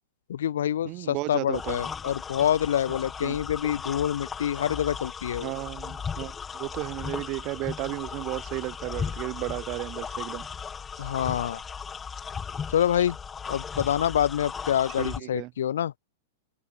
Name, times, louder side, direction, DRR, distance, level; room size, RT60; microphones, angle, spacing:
voice 1, 0.3-5.5 11.0-11.6 12.7-13.2 13.5-15.9, left 10 dB, 75° left, 0.5 m, -26 dB
voice 2, 0.8-1.8 2.9-3.0 3.2-3.4 5.4-10.5 11.0-11.1 15.0-15.5, right 22 dB, 45° right, 2.2 m, -34 dB
sound 1, 1.5-15.2, left 6 dB, 20° left, 5.7 m, -36 dB
open air
hypercardioid pair, 115°, 0 cm